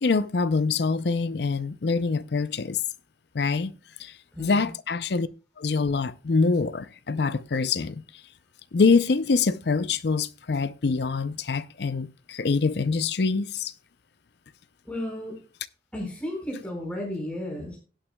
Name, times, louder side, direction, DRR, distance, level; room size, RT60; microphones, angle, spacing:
voice 1, 0.0-2.8 3.3-3.7 4.0-5.3 5.6-8.0 8.7-13.7, left 4 dB, 65° left, 0.5 m, -25 dB
voice 2, 4.3-4.7 14.8-15.4 15.9-17.8, left 1 dB, 5° left, 4.8 m, -33 dB
17.5 x 8.9 x 2.2 m
head